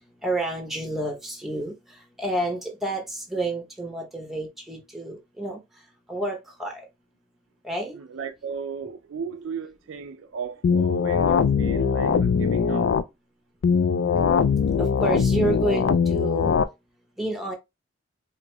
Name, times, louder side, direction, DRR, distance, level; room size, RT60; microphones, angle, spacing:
voice 1, 0.2-1.7 2.2-5.6 6.1-6.8 7.6-8.0 14.8-16.6 17.2-17.5, right 1 dB, ahead, 0.8 m, -29 dB
voice 2, 7.9-12.9, right 6 dB, 75° right, 0.4 m, -36 dB
sound 1, 10.6-13.0 13.6-16.6, left 6 dB, 70° left, 0.3 m, -21 dB
4.7 x 2.5 x 2.2 m
head